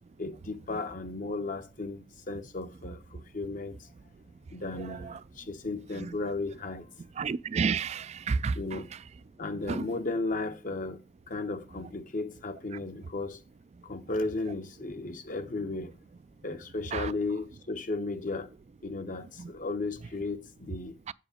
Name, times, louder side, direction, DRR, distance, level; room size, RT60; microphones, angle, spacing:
voice 1, 0.2-3.9 4.5-6.9 8.5-8.9 9.4-13.4 13.8-16.0 16.4-18.5 18.8-21.0, left 3 dB, 45° left, 0.9 m, -35 dB
voice 2, 7.2-8.6 9.7-9.8 16.9-17.1 21.1-21.2, right 5 dB, 35° right, 0.3 m, -29 dB
8.0 x 5.0 x 4.9 m
head